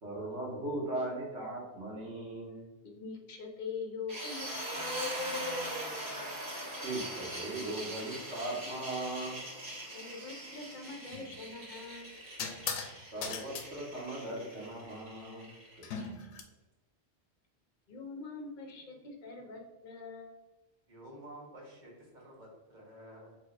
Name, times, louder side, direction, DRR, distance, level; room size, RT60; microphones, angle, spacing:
voice 1, 0.0-2.6 6.8-9.4 13.1-15.5, right 2 dB, 85° right, -4 dB, 1.7 m, -38 dB
voice 2, 2.8-5.8 9.9-12.2 17.9-20.3, left 4 dB, 50° left, 2 dB, 0.9 m, -44 dB
sound 1, 4.1-16.0, equal, 65° right, 2.0 m, -41 dB
sound 2, 11.1-11.3 12.4-12.9 13.2-13.7 15.8-16.4, left 5 dB, 80° left, 0.9 m, -38 dB
voice 3, 20.9-23.4, right 1 dB, 45° right, -3 dB, 1.4 m, -51 dB
4.9 x 3.8 x 2.5 m, 1.1 s
omnidirectional pair, 1.2 m